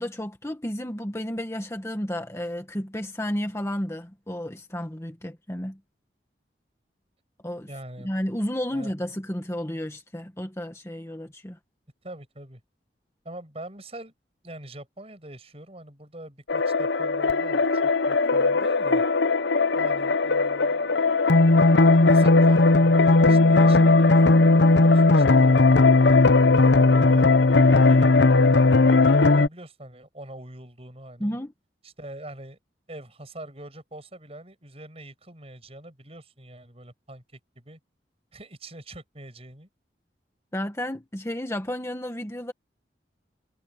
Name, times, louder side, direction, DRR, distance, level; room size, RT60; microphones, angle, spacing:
voice 1, 0.0-5.8 7.4-7.7 8.0-11.6 31.2-31.5 40.5-42.5, equal, 15° left, 1.6 m, -32 dB
voice 2, 7.7-8.1 8.7-8.9 12.0-12.6 13.2-14.1 14.4-19.1 19.7-21.3 22.0-25.6 26.0-28.8 29.2-31.4 31.8-32.6 32.9-37.8 38.3-39.7, right 1 dB, 35° right, 7.3 m, -43 dB
sound 1, 16.5-29.5, left 3 dB, 85° left, 0.8 m, -18 dB
head